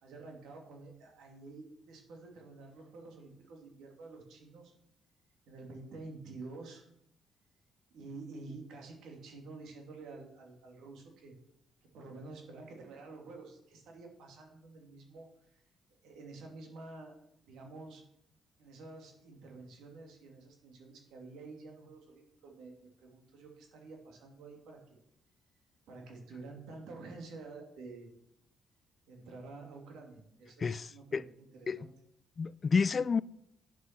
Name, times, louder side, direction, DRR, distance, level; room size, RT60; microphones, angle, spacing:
voice 1, 0.0-4.7 5.5-6.9 7.9-11.3 11.8-15.6 16.0-17.2 17.4-18.0 18.6-24.8 25.9-28.1 29.1-31.9, right 3 dB, 85° right, 2.7 m, -49 dB
voice 2, 30.6-31.2 31.7-31.8 32.4-33.2, left 5 dB, 40° left, 0.3 m, -30 dB
9.2 x 7.1 x 6.0 m
cardioid pair, 90°, 0 cm